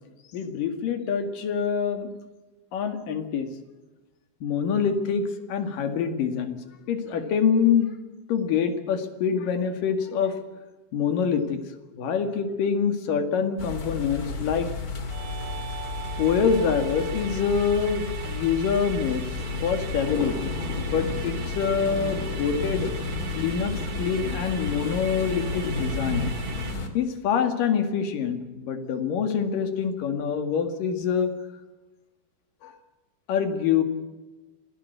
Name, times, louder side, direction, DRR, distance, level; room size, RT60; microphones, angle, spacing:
voice 1, 0.3-2.1 2.7-3.5 4.4-6.6 6.9-8.0 8.3-10.4 10.9-11.6 12.0-14.7 16.2-19.2 19.6-22.9 23.4-26.3 26.9-31.3 32.6-32.7 33.3-33.8, left 6 dB, 60° left, 8 dB, 3.5 m, -25 dB
sound 1, 13.6-26.9, left 3 dB, 30° left, 2.1 m, -32 dB
Musical instrument, 15.1-26.8, right 10 dB, 70° right, 3.2 m, -41 dB
26.0 x 17.0 x 8.1 m, 1.2 s
omnidirectional pair, 4.6 m